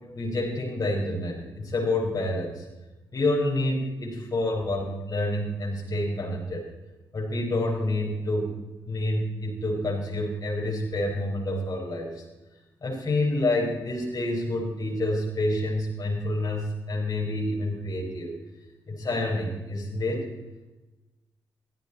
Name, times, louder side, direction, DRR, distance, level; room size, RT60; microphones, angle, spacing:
voice 1, 0.1-2.7 3.1-6.7 7.1-8.5 8.8-12.2 12.8-18.4 18.9-20.3, left 1 dB, 45° left, -2 dB, 5.3 m, -28 dB
17.0 x 13.5 x 4.3 m, 1.1 s
cardioid pair, 60°, 9 cm